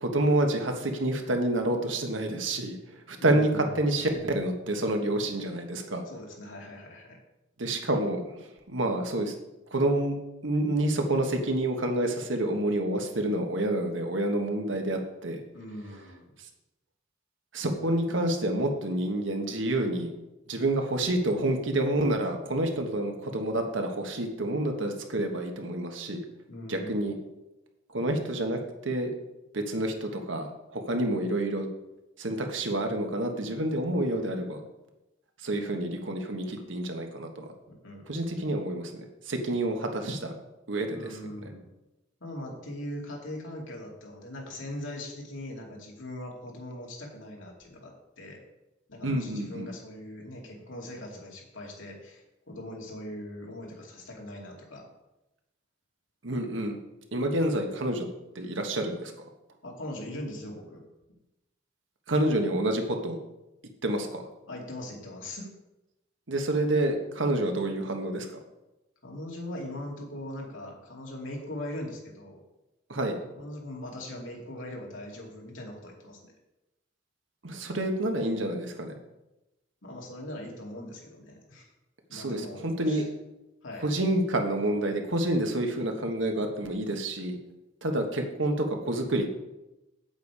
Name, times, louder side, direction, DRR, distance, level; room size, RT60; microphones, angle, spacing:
voice 1, 0.0-6.0 7.6-9.4 9.7-10.1 10.4-15.4 17.5-20.1 20.5-26.2 26.7-27.1 27.9-29.1 29.5-31.7 32.2-34.6 35.4-37.5 38.1-40.3 40.7-41.2 49.0-49.7 56.2-56.8 57.1-58.1 58.3-59.1 62.1-63.2 63.8-64.2 66.3-68.3 72.9-73.2 77.4-79.0 82.1-83.0 83.8-87.4 87.8-89.4, right 1 dB, 75° right, 4 dB, 1.4 m, -28 dB
voice 2, 3.2-3.8 6.1-7.2 15.5-16.3 26.5-27.1 37.7-38.1 40.9-41.7 42.2-48.4 48.9-54.9 57.4-57.5 59.6-60.8 64.5-65.5 69.0-72.4 73.4-76.3 79.8-81.7 82.1-83.1 83.6-83.9, left 1 dB, 85° left, -1 dB, 2.4 m, -40 dB
8.4 x 8.1 x 4.8 m, 0.96 s
head